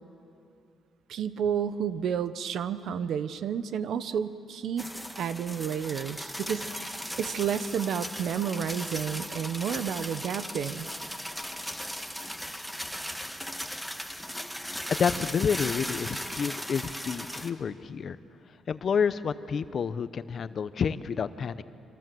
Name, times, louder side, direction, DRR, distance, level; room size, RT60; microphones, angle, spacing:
voice 1, 1.1-4.9 5.2-10.9, right 8 dB, 70° right, 13 dB, 1.0 m, -31 dB
sound 1, 4.8-17.5, equal, ahead, 1.6 m, -37 dB
voice 2, 14.9-18.2 18.7-21.6, left 6 dB, 50° left, 13 dB, 0.9 m, -29 dB
26.5 x 25.5 x 7.8 m, 2.6 s
cardioid pair, 90°, 0 cm